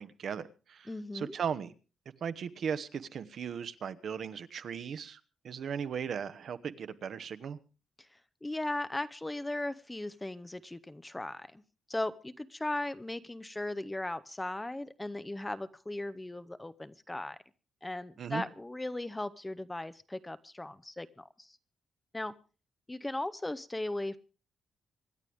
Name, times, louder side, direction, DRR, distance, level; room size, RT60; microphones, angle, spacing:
voice 1, 0.0-1.7 2.2-5.2 5.4-7.6 18.2-18.4, right 7 dB, 55° right, 12 dB, 1.0 m, -37 dB
voice 2, 0.9-1.3 8.4-11.6 11.9-17.4 17.8-21.6 22.1-22.3 22.9-24.2, left 1 dB, 10° left, 13 dB, 0.6 m, -37 dB
26.0 x 11.0 x 3.5 m, 0.36 s
wide cardioid pair, 170°, 0 cm